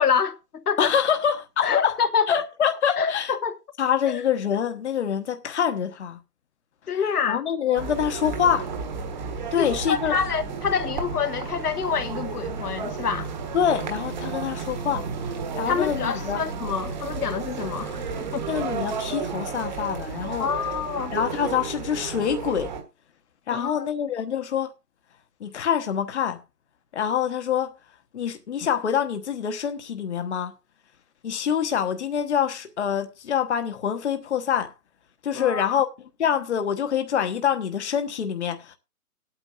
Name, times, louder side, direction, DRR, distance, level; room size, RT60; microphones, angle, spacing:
voice 1, 0.0-0.9 1.6-2.3 3.0-3.6 4.1-4.2 6.9-7.4 9.6-13.3 15.7-18.5 20.4-21.1 23.5-23.9 35.3-35.7, left 6 dB, 75° left, 1.3 m, -26 dB
voice 2, 0.8-2.0 2.3-3.3 3.8-6.2 6.9-7.0 7.3-8.7 9.5-10.2 13.5-16.4 18.5-20.5 21.1-22.7 23.5-24.7 25.4-26.4 26.9-27.7 28.1-30.5 31.2-34.7 35.2-35.9 36.2-38.8, left 8 dB, 45° left, 1.1 m, -25 dB
sound 1, 7.7-22.8, right 5 dB, 30° right, 1.5 m, -32 dB
19.0 x 9.0 x 2.4 m
hypercardioid pair, 165°, 46 cm